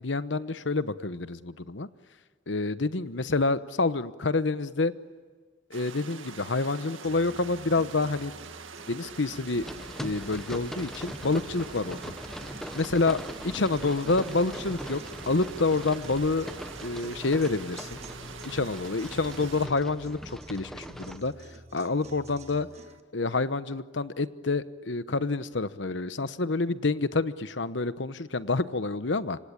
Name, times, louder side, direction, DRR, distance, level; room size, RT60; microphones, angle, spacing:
voice 1, 0.0-1.9 2.5-4.9 5.7-8.3 8.9-9.7 10.0-12.0 12.7-13.2 13.4-15.0 15.3-16.5 16.8-18.0 18.4-21.3 21.7-22.7 23.1-29.4, left 3 dB, 65° left, 14 dB, 1.0 m, -28 dB
sound 1, 5.7-19.7, right 5 dB, 90° right, 2.0 m, -45 dB
sound 2, 7.0-23.0, right 1 dB, 35° right, 1.5 m, -49 dB
sound 3, 9.6-21.2, equal, ahead, 1.0 m, -41 dB
27.0 x 25.0 x 8.8 m, 1.5 s
head